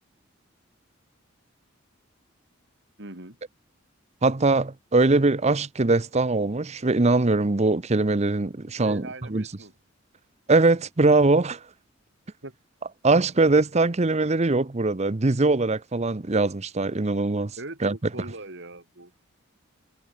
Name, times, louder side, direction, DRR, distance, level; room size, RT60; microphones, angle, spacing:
voice 1, 3.0-3.4 8.8-9.7 12.4-12.5 17.6-19.4, right 2 dB, 60° right, 4.6 m, -41 dB
voice 2, 4.2-9.0 9.3-9.4 10.5-11.6 13.0-17.5 17.8-17.9, right 3 dB, 35° right, 0.8 m, -21 dB
head